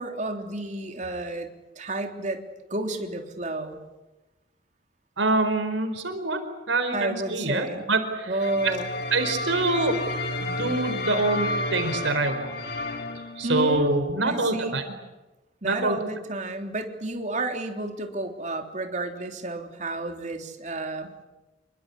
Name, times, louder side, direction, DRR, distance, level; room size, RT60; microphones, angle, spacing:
voice 1, 0.0-1.5 1.8-2.4 2.7-3.8 6.9-7.9 8.3-8.9 13.4-14.8 15.6-21.1, right 2 dB, 40° right, 4 dB, 3.4 m, -31 dB
voice 2, 5.2-6.4 6.7-8.3 8.6-8.7 9.1-10.0 10.4-12.5 13.4-14.8 15.6-16.0, right 2 dB, 85° right, 7 dB, 4.6 m, -25 dB
sound 1, 8.4-13.8, left 1 dB, 55° left, 2.6 m, -31 dB
28.0 x 24.0 x 8.4 m, 1.1 s
head